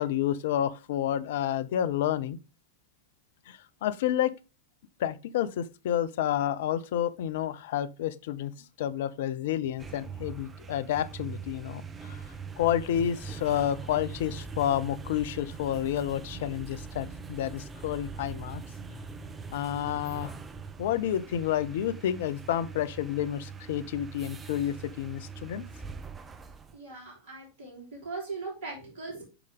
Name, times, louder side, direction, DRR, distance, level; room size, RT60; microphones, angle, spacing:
voice 1, 0.0-2.4 3.5-4.3 5.0-12.3 12.6-18.6 19.5-20.3 20.8-25.7, left 11 dB, 55° left, 0.5 m, -30 dB
sound 1, 9.6-26.8, right 5 dB, 15° right, 0.6 m, -42 dB
voice 2, 26.7-29.3, right 3 dB, 50° right, 4.0 m, -39 dB
6.8 x 4.7 x 3.5 m
figure-of-eight pair, 90°, 0 cm